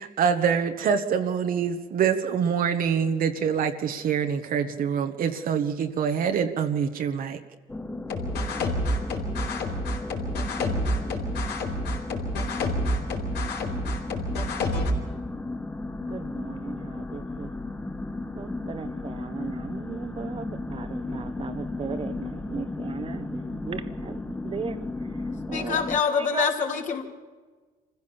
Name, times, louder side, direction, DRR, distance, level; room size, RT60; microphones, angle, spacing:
voice 1, 0.0-7.4, right 7 dB, 55° right, 1.4 m, -25 dB
sound 1, 7.7-26.0, left 2 dB, 10° left, 0.8 m, -35 dB
sound 2, 8.1-14.9, left 1 dB, 75° left, 4.5 m, -28 dB
voice 2, 16.0-17.5 18.3-24.8 25.5-25.8 26.2-26.5, right 5 dB, 30° right, 1.2 m, -37 dB
voice 3, 25.5-27.0, left 6 dB, 50° left, 3.1 m, -25 dB
25.5 x 15.5 x 7.1 m
cardioid pair, 110°, 17 cm